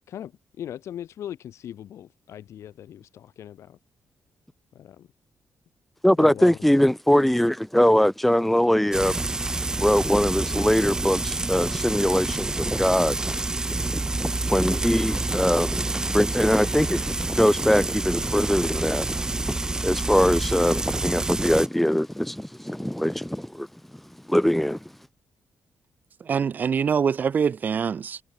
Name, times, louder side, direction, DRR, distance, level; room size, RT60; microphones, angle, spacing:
voice 1, 0.1-3.8 4.7-5.1 6.2-6.6, left 10 dB, 70° left, 3.2 m, -39 dB
voice 2, 6.0-9.1 9.8-13.2 13.5-19.6 19.8-23.7 24.3-24.8, equal, 5° left, 0.8 m, -22 dB
Frying (food), 8.9-21.7, right 2 dB, 15° right, 1.3 m, -28 dB
voice 3, 26.2-28.2, right 6 dB, 35° right, 0.6 m, -24 dB
wide cardioid pair, 180°, 5 cm